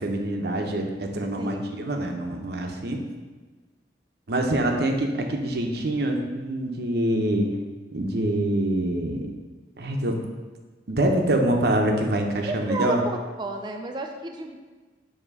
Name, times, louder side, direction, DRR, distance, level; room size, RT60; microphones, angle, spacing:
voice 1, 0.0-3.0 4.3-7.5 7.9-9.3 9.8-10.2 10.9-13.0, right 1 dB, 60° right, 3 dB, 0.8 m, -25 dB
voice 2, 12.5-13.0 13.4-14.6, right 2 dB, 25° right, 4 dB, 0.4 m, -32 dB
7.3 x 3.0 x 5.4 m, 1.3 s
head